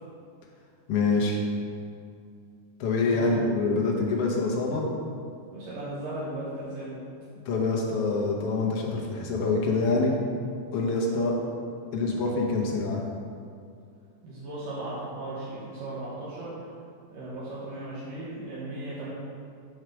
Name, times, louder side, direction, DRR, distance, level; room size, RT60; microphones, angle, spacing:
voice 1, 0.9-1.4 2.8-4.8 7.4-10.1 10.7-11.3 11.9-13.0, left 3 dB, 70° left, -2 dB, 1.4 m, -25 dB
voice 2, 3.0-3.5 5.5-7.0 14.2-16.5 17.1-19.1, right 1 dB, 75° right, -9 dB, 2.9 m, -36 dB
8.1 x 4.7 x 6.0 m, 2.4 s
omnidirectional pair, 3.9 m